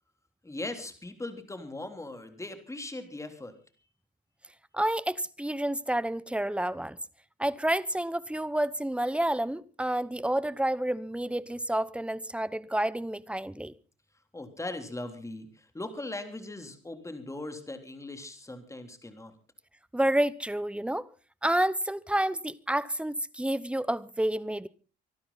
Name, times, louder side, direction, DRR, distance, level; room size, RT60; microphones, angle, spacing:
voice 1, 0.4-3.5 14.3-19.3, left 2 dB, 15° left, 3.4 m, -39 dB
voice 2, 4.7-7.0 7.4-13.7 19.9-21.1 21.4-24.7, right 1 dB, 5° right, 0.9 m, -29 dB
24.5 x 12.0 x 4.1 m
cardioid pair, 90°, 20 cm